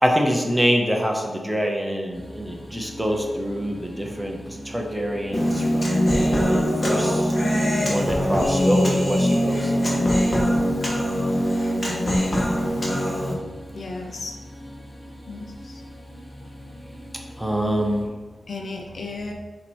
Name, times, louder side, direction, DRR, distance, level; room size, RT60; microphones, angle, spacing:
voice 1, 0.0-7.4 7.9-9.7 17.4-18.1, equal, 5° right, 1 dB, 0.6 m, -25 dB
sound 1, 2.1-18.0, equal, 10° left, 1.7 m, -41 dB
Human voice, 5.3-13.3, equal, 30° left, 1.1 m, -22 dB
voice 2, 13.7-14.3 15.3-15.8 18.5-19.3, left 3 dB, 55° left, 1 dB, 0.8 m, -34 dB
7.4 x 2.9 x 4.4 m, 1.3 s
wide cardioid pair, 160°, 0 cm